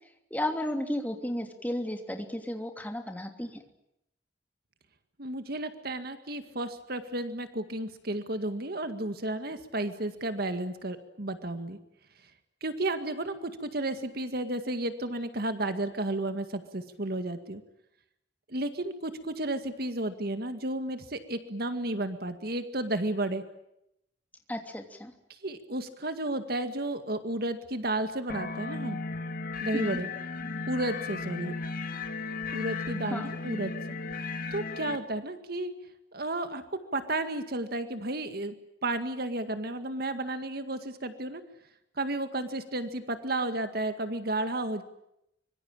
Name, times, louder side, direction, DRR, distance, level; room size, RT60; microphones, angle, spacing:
voice 1, 0.3-3.6 24.5-25.1 29.7-30.0 33.1-33.3, left 1 dB, 10° left, 5 dB, 3.0 m, -33 dB
voice 2, 5.2-11.8 12.6-17.6 18.5-23.4 25.3-29.0 29.6-30.1 30.7-31.5 32.5-33.7 34.5-35.7 36.1-36.6 36.9-38.5 38.8-41.4 42.0-44.8, right 1 dB, 55° right, 9 dB, 1.9 m, -32 dB
sound 1, 28.3-35.0, left 4 dB, 50° left, 2.1 m, -35 dB
25.0 x 23.5 x 9.0 m, 0.81 s
head